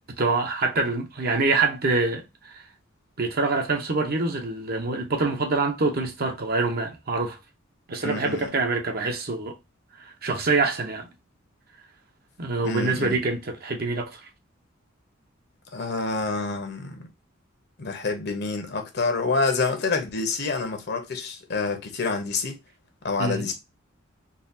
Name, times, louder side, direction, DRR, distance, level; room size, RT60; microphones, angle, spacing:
voice 1, 0.2-2.2 3.2-7.4 7.9-9.5 10.0-11.1 12.4-14.2 23.2-23.5, right 3 dB, 50° right, 0.8 m, -25 dB
voice 2, 8.0-8.5 12.6-13.2 15.7-17.0 17.8-22.6 23.0-23.5, left 4 dB, 55° left, 0.9 m, -27 dB
3.9 x 2.4 x 2.7 m
head